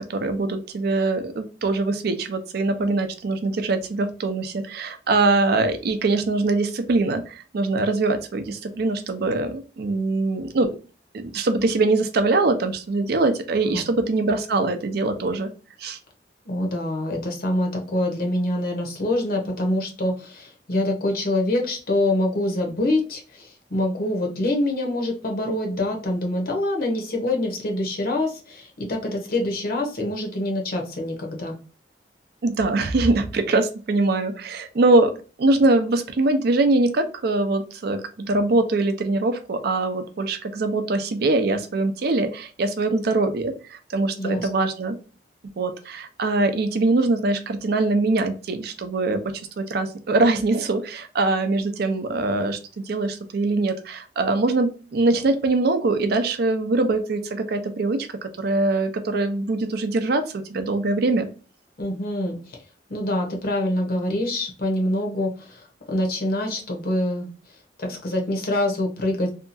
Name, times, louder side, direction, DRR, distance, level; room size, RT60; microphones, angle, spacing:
voice 1, 0.0-10.7 11.1-15.5 15.8-16.0 32.4-35.1 35.4-45.0 45.6-52.6 52.8-61.3, right 2 dB, 60° right, 8 dB, 0.4 m, -23 dB
voice 2, 16.5-31.6 44.2-44.5 61.8-62.6 62.9-67.3 67.8-69.3, left 1 dB, 55° left, 2 dB, 0.7 m, -25 dB
2.7 x 2.3 x 2.5 m, 0.35 s
head